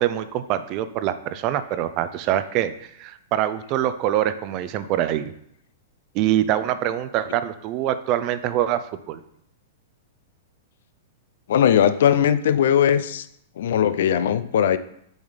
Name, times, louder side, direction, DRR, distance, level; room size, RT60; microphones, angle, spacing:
voice 1, 0.0-5.3 6.1-9.2, right 12 dB, 35° right, 12 dB, 0.5 m, -24 dB
voice 2, 11.5-13.3 13.6-14.8, left 9 dB, 70° left, 13 dB, 0.5 m, -19 dB
7.1 x 3.9 x 5.1 m, 0.71 s
hypercardioid pair, 150°, 0 cm